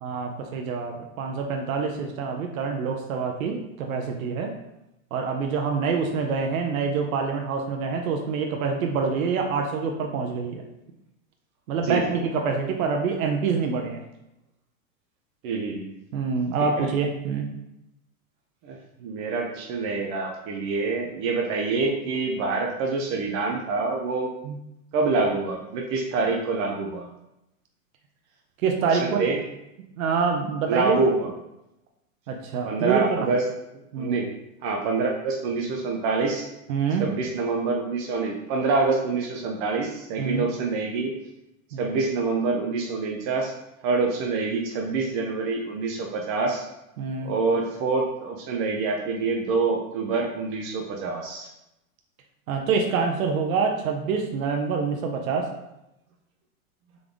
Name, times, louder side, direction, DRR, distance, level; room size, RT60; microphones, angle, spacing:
voice 1, 0.0-4.5 5.1-10.6 11.7-14.0 16.1-17.4 24.4-24.6 28.6-29.3 30.0-31.0 32.3-33.3 33.9-34.2 36.7-37.0 40.2-40.4 41.7-41.9 47.0-47.3 52.5-55.5, right 5 dB, 70° right, 2 dB, 0.8 m, -26 dB
voice 2, 11.8-12.2 15.4-15.9 16.8-16.9 18.6-24.3 24.9-27.1 28.9-29.4 30.7-31.3 32.6-33.4 33.9-34.3 34.6-36.5 37.0-41.2 41.8-43.5 43.8-46.6 47.2-51.5, right 4 dB, 30° right, 1 dB, 0.5 m, -26 dB
3.8 x 3.4 x 3.4 m, 0.88 s
hypercardioid pair, 130°, 42 cm